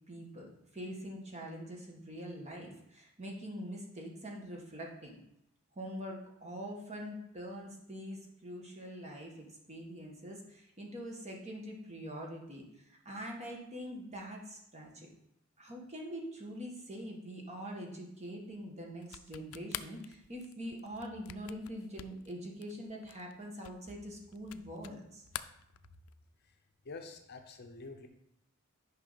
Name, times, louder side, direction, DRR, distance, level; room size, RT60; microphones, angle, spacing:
voice 1, 0.1-5.2 5.7-15.1 15.6-25.2, equal, 30° right, 0 dB, 1.5 m, -44 dB
sound 1, 19.0-25.0 25.3-26.3, left 12 dB, 70° left, 0.4 m, -46 dB
voice 2, 26.4-28.1, left 3 dB, 50° left, 5 dB, 0.8 m, -48 dB
9.5 x 5.4 x 4.1 m, 0.79 s
head